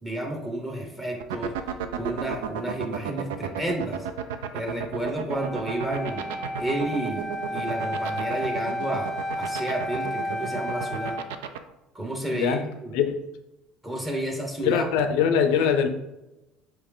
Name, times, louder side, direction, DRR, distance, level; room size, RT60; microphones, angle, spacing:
voice 1, 0.0-1.5 2.0-4.1 4.5-11.2 11.9-13.0 13.8-14.9, right 1 dB, 15° right, 1 dB, 0.9 m, -31 dB
sound 1, 1.2-11.6, right 9 dB, 85° right, 0.3 m, -32 dB
Wind instrument woodwind instrument, 5.3-11.3, equal, 20° left, 0.6 m, -32 dB
voice 2, 12.3-12.6 12.9-13.1 14.6-15.9, left 7 dB, 75° left, 8 dB, 0.5 m, -22 dB
4.5 x 3.1 x 3.7 m, 0.95 s
supercardioid pair, 85°, 0 cm